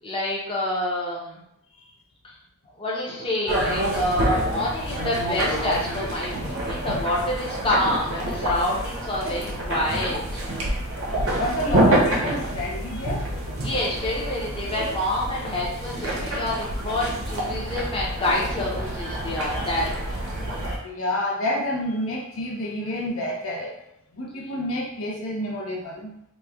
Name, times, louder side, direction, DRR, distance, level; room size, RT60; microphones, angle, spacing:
voice 1, 0.0-1.4 2.8-10.5 13.6-19.9, left 1 dB, 25° left, -5 dB, 0.6 m, -27 dB
sound 1, 3.5-20.8, right 1 dB, 75° right, 0.8 m, -27 dB
voice 2, 11.1-13.2 20.8-23.7 24.1-26.1, left 1 dB, 70° left, -1 dB, 0.6 m, -29 dB
3.1 x 2.2 x 3.4 m, 0.79 s
head